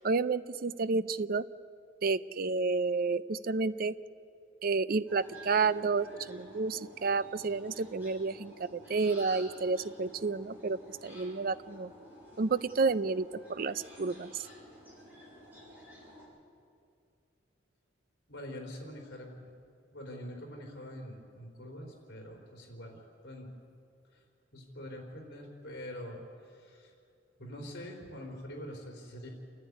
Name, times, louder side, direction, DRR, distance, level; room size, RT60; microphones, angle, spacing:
voice 1, 0.0-1.4 2.0-3.9 4.6-11.9 12.4-14.4, right 4 dB, 50° right, 15 dB, 0.5 m, -30 dB
sound 1, 5.1-16.2, equal, 10° right, 7.8 m, -52 dB
voice 2, 18.3-19.5 19.9-23.0 23.2-23.5 24.5-26.2 26.6-26.9 27.4-29.3, equal, 55° left, 1 dB, 4.0 m, -44 dB
29.0 x 11.0 x 9.7 m, 2.3 s
head